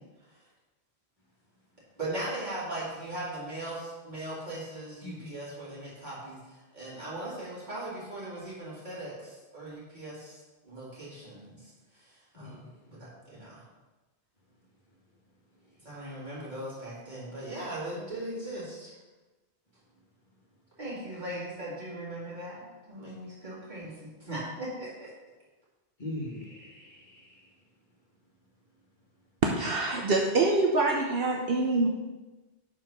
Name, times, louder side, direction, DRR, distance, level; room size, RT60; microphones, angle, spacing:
voice 1, 2.0-13.6 15.8-18.9 20.8-25.1, right 1 dB, 45° right, -8 dB, 3.2 m, -39 dB
voice 2, 26.0-27.5, left 1 dB, 45° left, -3 dB, 1.7 m, -41 dB
voice 3, 29.4-31.9, right 3 dB, 65° right, 0 dB, 1.0 m, -25 dB
7.6 x 4.8 x 5.8 m, 1.2 s
omnidirectional pair, 1.1 m